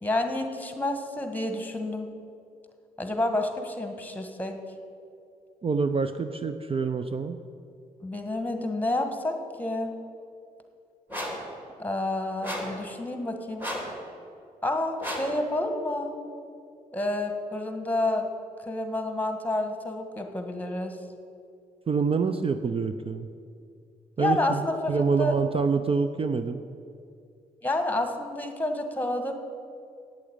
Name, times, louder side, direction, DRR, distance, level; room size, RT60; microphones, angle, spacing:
voice 1, 0.0-2.1 3.0-4.6 8.0-9.9 11.8-13.7 14.6-16.1 16.9-18.2 18.7-20.9 24.2-25.3 27.6-29.4, left 1 dB, 10° left, 5 dB, 1.5 m, -29 dB
voice 2, 5.6-7.4 21.9-23.3 24.2-26.6, right 5 dB, 40° right, 9 dB, 0.6 m, -26 dB
sound 1, 11.1-11.5 12.4-12.8 13.6-14.0 15.0-15.4, equal, 15° right, 2.9 m, -33 dB
8.5 x 8.2 x 8.8 m, 2.4 s
cardioid pair, 65°, 15 cm